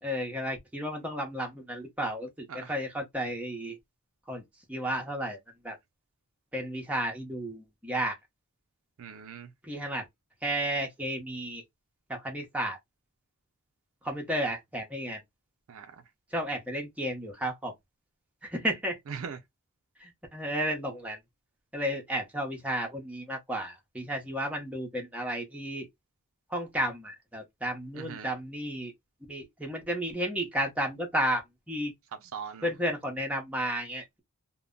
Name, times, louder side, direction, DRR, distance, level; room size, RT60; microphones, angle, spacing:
voice 1, 0.0-3.8 4.3-4.4 4.7-5.4 5.6-5.8 6.5-8.1 9.6-10.0 10.4-11.6 12.1-12.8 14.0-15.2 16.3-17.7 18.4-19.0 20.0-21.2 21.7-25.9 26.5-28.9 29.3-31.9 32.6-34.2, equal, 5° right, 0.7 m, -32 dB
voice 2, 9.0-9.5 15.7-16.0 19.1-19.4 27.9-28.3 32.2-32.7, right 6 dB, 65° right, 0.4 m, -41 dB
2.1 x 2.0 x 3.6 m
head